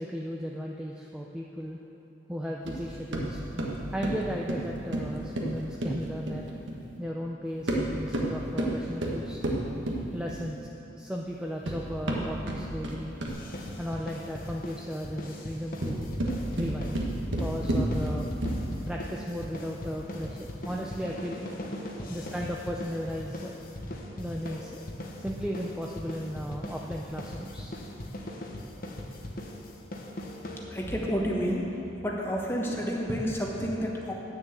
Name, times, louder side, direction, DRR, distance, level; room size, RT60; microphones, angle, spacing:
voice 1, 0.0-1.8 2.3-3.4 3.9-6.4 7.0-9.4 10.1-10.6 10.9-13.2 13.8-16.1 16.6-17.0 17.4-18.3 18.9-21.4 22.1-23.5 24.2-24.8 25.2-27.7, equal, 5° right, -2 dB, 0.5 m, -35 dB
sound 1, 2.7-6.9 7.5-10.6 11.3-13.6 15.6-18.8, right 1 dB, 70° right, 1.4 m, -31 dB
sound 2, 13.3-31.0, left 1 dB, 45° left, 1.1 m, -40 dB
voice 2, 21.7-22.3 30.7-31.7 32.0-34.1, equal, 10° left, -2 dB, 1.3 m, -30 dB
9.8 x 6.7 x 8.0 m, 3.0 s
head